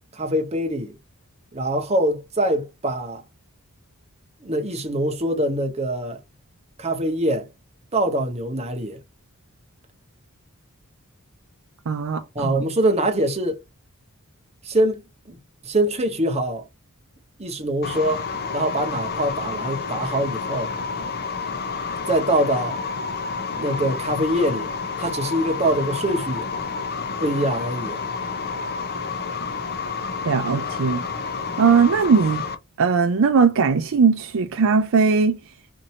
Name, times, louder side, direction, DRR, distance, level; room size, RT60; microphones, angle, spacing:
voice 1, 0.1-1.0 1.5-3.2 4.4-6.2 6.8-7.5 7.9-9.0 12.3-13.6 14.6-15.4 15.6-16.7 17.4-18.2 18.5-20.7 22.1-22.8 23.5-24.7 25.0-26.5 27.2-28.0, right 1 dB, 30° right, 0.9 m, -23 dB
voice 2, 11.9-12.6 30.2-31.0 31.6-32.4 32.8-35.4, right 5 dB, 65° right, 0.5 m, -19 dB
sound 1, 17.8-32.6, left 5 dB, 45° left, 0.7 m, -29 dB
4.3 x 2.7 x 2.8 m
head